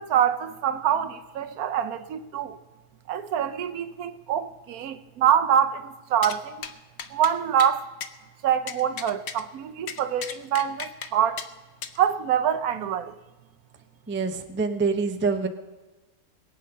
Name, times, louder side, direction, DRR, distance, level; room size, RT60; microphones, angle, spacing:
voice 1, 0.0-2.6 3.1-6.6 7.1-7.9 8.4-11.4 12.0-13.2, right 9 dB, 75° right, 1.2 m, -25 dB
sound 1, 6.2-6.4 6.6-6.7 7.0-7.3 7.6-7.7 8.0-8.1 8.7-9.4 9.9-11.1 11.4-11.5 11.8-12.0, left 7 dB, 55° left, 0.9 m, -35 dB
voice 2, 14.1-15.5, right 4 dB, 15° right, 0.4 m, -25 dB
21.5 x 8.4 x 5.5 m
omnidirectional pair, 1.6 m